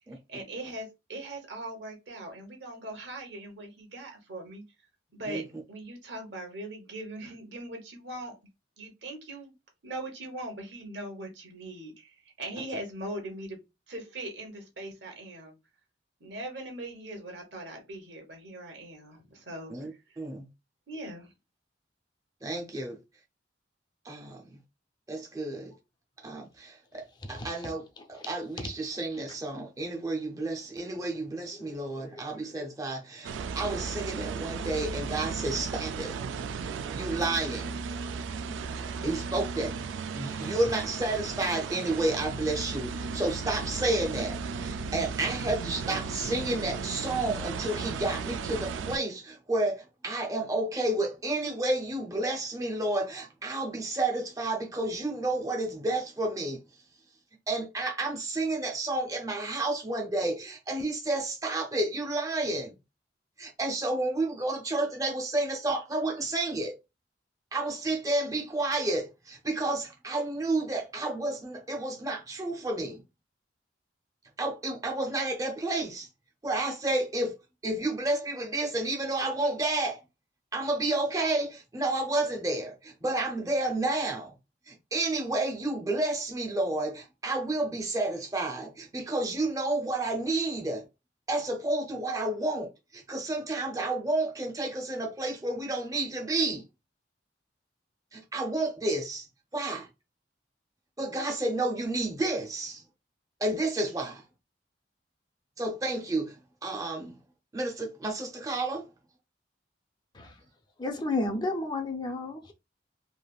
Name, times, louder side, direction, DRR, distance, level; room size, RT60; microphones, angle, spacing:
voice 1, 0.3-4.6 5.1-8.3 8.8-9.5 9.8-13.6 13.9-15.5 16.2-20.2 20.9-21.3, right 1 dB, 65° right, 1.1 m, -40 dB
voice 2, 20.2-20.5 22.4-23.0 24.0-24.6 25.1-25.7 26.2-36.1 36.9-37.8 38.5-39.8 40.1-56.6 57.5-62.7 63.4-66.8 67.5-73.0 74.4-76.1 76.4-77.3 77.6-80.0 80.5-84.3 84.7-90.8 91.3-96.6 98.1-99.3 99.5-99.9 101.0-102.8 103.4-104.2 105.6-107.2 107.5-108.9, right 2 dB, 20° right, 0.6 m, -31 dB
voice 3, 31.6-32.3 32.5-32.7 38.9-39.3 39.9-40.5 110.1-110.3 110.8-112.5, left 2 dB, 25° left, 0.5 m, -34 dB
sound 1, 33.2-49.0, right 5 dB, 85° right, 0.3 m, -35 dB
3.3 x 2.5 x 2.3 m
head